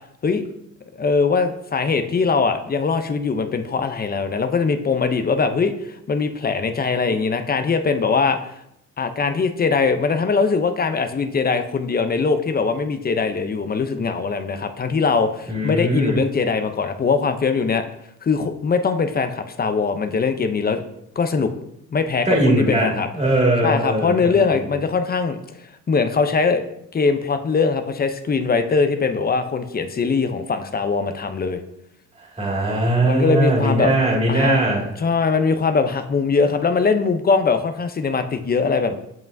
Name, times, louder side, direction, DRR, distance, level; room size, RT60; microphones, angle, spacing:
voice 1, 1.0-8.5 9.0-17.8 18.2-20.8 21.2-21.5 21.9-23.1 23.6-25.4 25.9-26.6 26.9-31.6 33.0-33.9 34.3-34.6 35.0-39.0, left 4 dB, 30° left, 8 dB, 0.6 m, -21 dB
voice 2, 15.5-16.2 22.2-24.4 32.4-34.9, right 1 dB, 20° right, -3 dB, 2.2 m, -20 dB
7.2 x 5.5 x 2.6 m, 0.78 s
cardioid pair, 90°, 30 cm